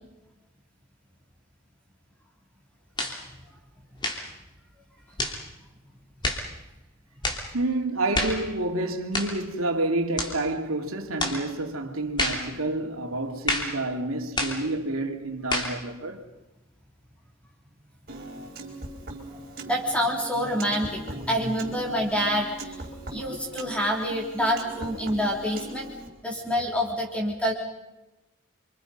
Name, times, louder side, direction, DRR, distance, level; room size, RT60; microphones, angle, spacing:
sound 1, 3.0-3.2 4.0-4.3 5.2-5.4 6.2-6.5 7.2-7.5 8.1-8.4 9.1-9.4 10.2-10.4 11.2-11.4 12.2-12.5 13.5-13.8 14.4-14.6 15.5-15.8, left 1 dB, 20° left, 3.1 m, -28 dB
voice 1, 7.5-16.3 23.3-23.6, right 2 dB, 85° right, 2.7 m, -29 dB
Piano, 18.1-26.1, right 1 dB, 45° right, 4.6 m, -40 dB
voice 2, 19.7-22.7 23.1-25.9 26.2-27.5, equal, 5° left, 3.9 m, -27 dB
29.5 x 25.5 x 5.5 m
head